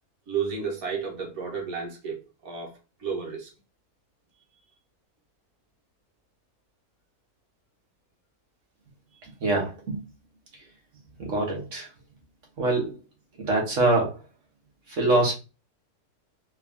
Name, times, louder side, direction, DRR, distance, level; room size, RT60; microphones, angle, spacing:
voice 1, 0.3-3.5, right 6 dB, 70° right, 1.8 m, -32 dB
voice 2, 9.4-10.0 11.2-11.9 12.6-13.0 13.4-14.1 15.0-15.3, right 2 dB, 55° right, 1.8 m, -24 dB
4.3 x 2.7 x 3.5 m
omnidirectional pair, 1.6 m